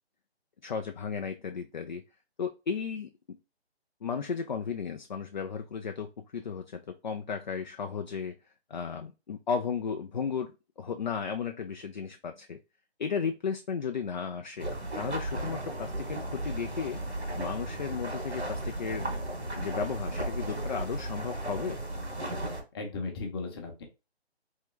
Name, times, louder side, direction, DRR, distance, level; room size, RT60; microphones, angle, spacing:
voice 1, 0.6-2.0 2.4-3.1 4.0-8.4 8.7-10.5 10.8-12.6 13.0-14.7 15.0-17.0 17.4-19.1 19.6-21.8, left 6 dB, 45° left, 6 dB, 0.4 m, -34 dB
sound 1, 14.6-22.6, right 1 dB, 85° right, 2.1 m, -35 dB
voice 2, 22.7-23.8, left 3 dB, 25° left, 3 dB, 0.9 m, -36 dB
3.6 x 3.2 x 3.1 m, 0.27 s
figure-of-eight pair, 150°, 32 cm